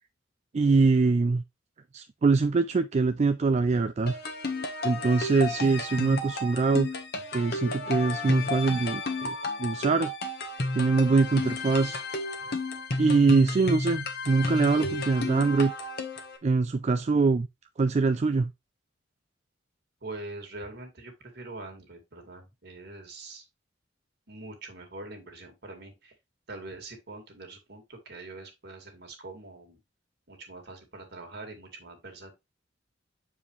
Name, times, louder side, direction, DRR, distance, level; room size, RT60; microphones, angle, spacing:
voice 1, 0.5-1.4 1.9-4.2 4.8-6.9 7.3-10.1 10.8-12.0 13.0-15.7 16.4-17.5 17.8-18.5, right 4 dB, 35° right, 0.4 m, -23 dB
sound 1, 4.1-16.4, left 2 dB, 55° left, 1.3 m, -32 dB
voice 2, 20.0-23.5 24.3-26.1 26.5-29.8 30.3-32.3, right 2 dB, 60° right, 2.4 m, -43 dB
7.3 x 4.8 x 3.2 m
head